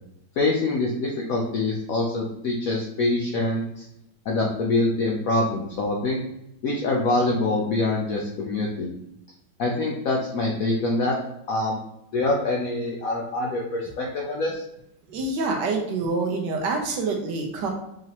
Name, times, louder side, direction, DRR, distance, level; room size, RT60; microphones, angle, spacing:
voice 1, 0.4-3.9 4.3-6.2 6.6-9.0 9.6-11.2 11.5-11.8 12.1-14.6, left 2 dB, 75° left, -1 dB, 0.8 m, -25 dB
voice 2, 15.1-17.7, right 3 dB, 70° right, 2 dB, 1.2 m, -26 dB
4.9 x 2.9 x 2.9 m, 0.81 s
omnidirectional pair, 2.1 m